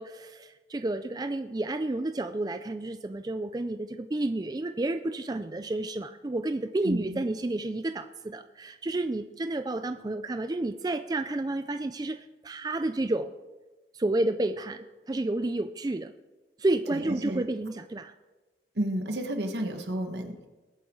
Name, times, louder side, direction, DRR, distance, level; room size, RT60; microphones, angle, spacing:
voice 1, 0.0-13.3 13.9-16.1 16.6-18.1, right 2 dB, 20° right, 9 dB, 0.4 m, -31 dB
voice 2, 6.8-7.2 16.9-17.5 18.7-20.5, right 1 dB, 75° right, 5 dB, 1.6 m, -31 dB
20.5 x 8.7 x 3.9 m, 1.2 s
head